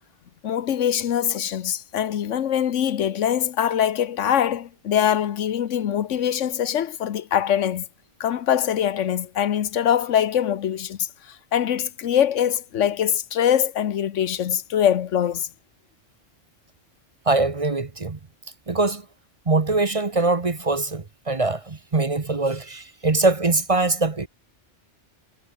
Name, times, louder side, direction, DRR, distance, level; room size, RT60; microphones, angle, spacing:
voice 1, 0.4-7.9 8.2-15.5, left 9 dB, 90° left, 1.2 m, -23 dB
voice 2, 17.2-18.2 18.7-19.1 19.5-24.3, right 3 dB, 30° right, 1.1 m, -22 dB
omnidirectional pair, 1.2 m